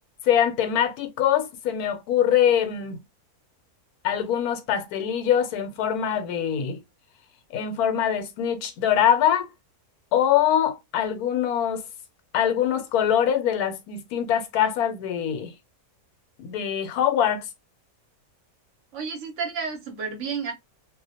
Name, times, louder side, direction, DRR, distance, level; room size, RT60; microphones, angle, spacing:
voice 1, 0.2-3.0 4.0-6.8 7.5-9.5 10.1-11.8 12.3-15.5 16.4-17.4, left 9 dB, 85° left, 1.1 m, -23 dB
voice 2, 18.9-20.5, right 5 dB, 65° right, 0.9 m, -31 dB
2.4 x 2.1 x 2.6 m
omnidirectional pair, 1.6 m